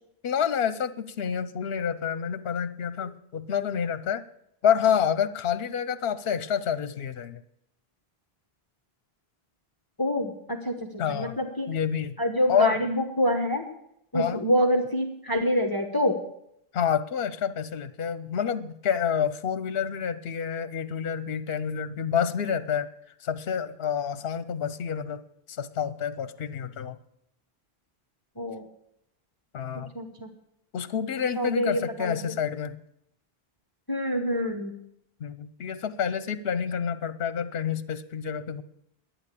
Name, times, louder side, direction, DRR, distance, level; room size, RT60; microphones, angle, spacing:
voice 1, 0.2-4.2 4.6-7.4 11.0-11.4 11.7-12.2 12.5-12.8 14.1-14.4 16.7-22.9 23.2-25.2 25.5-27.0 29.5-29.9 30.7-32.8 35.2-38.6, left 8 dB, 70° left, 14 dB, 1.0 m, -28 dB
voice 2, 10.0-11.7 12.2-13.7 14.1-16.2 28.4-28.7 29.9-30.3 31.3-32.2 33.9-34.7, equal, 20° left, 2 dB, 1.2 m, -26 dB
11.0 x 9.2 x 8.3 m, 0.77 s
omnidirectional pair, 1.0 m